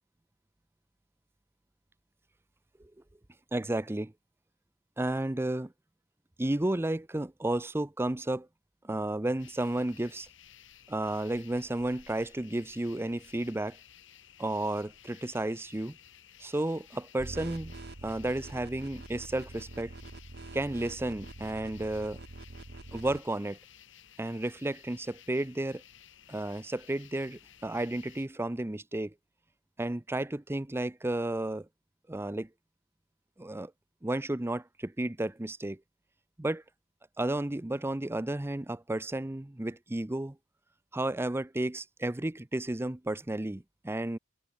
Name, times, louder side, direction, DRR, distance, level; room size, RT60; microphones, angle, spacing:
voice 1, 3.5-4.1 5.0-5.7 6.4-8.5 8.8-10.3 10.9-13.8 14.4-16.0 16.4-17.7 18.0-19.9 20.5-22.2 22.9-23.6 24.2-25.8 26.3-29.1 29.8-31.7 32.1-32.5 33.4-33.7 34.0-35.8 36.4-36.6 37.2-40.4 40.9-44.2, right 1 dB, 10° right, 0.6 m, -32 dB
sound 1, 9.4-28.3, left 9 dB, 65° left, 3.2 m, -56 dB
sound 2, 17.2-23.2, right 2 dB, 55° right, 1.0 m, -45 dB
head